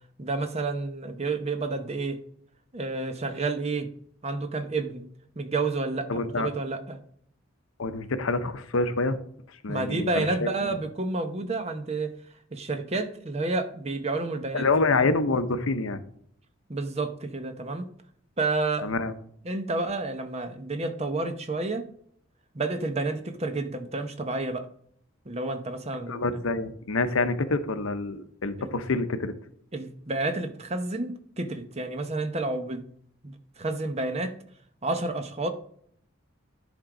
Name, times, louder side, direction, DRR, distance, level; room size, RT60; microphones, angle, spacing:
voice 1, 0.2-2.2 2.7-3.9 4.2-5.1 5.4-7.0 9.7-12.1 12.5-14.7 16.7-17.9 18.4-18.9 19.4-21.9 22.5-24.7 25.2-26.4 28.6-28.7 29.7-32.8 33.2-34.3 34.8-35.5, right 3 dB, 30° right, 8 dB, 0.8 m, -30 dB
voice 2, 6.1-6.5 7.8-9.2 9.6-10.5 14.5-16.0 18.8-19.1 26.1-29.3, left 3 dB, 80° left, 11 dB, 0.8 m, -27 dB
10.5 x 3.7 x 4.9 m, 0.64 s
head